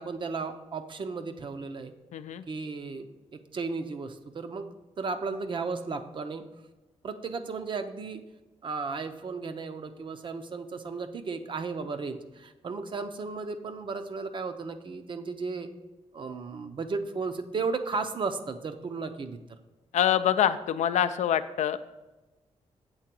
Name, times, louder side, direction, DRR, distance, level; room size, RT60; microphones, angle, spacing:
voice 1, 0.0-1.9 2.5-4.7 5.0-6.4 7.0-8.2 8.6-15.7 16.1-19.4, right 4 dB, 45° right, 8 dB, 0.6 m, -34 dB
voice 2, 2.1-2.4 19.9-21.9, left 10 dB, 85° left, 12 dB, 0.4 m, -25 dB
7.9 x 3.7 x 6.0 m, 1.1 s
wide cardioid pair, 125°, 12 cm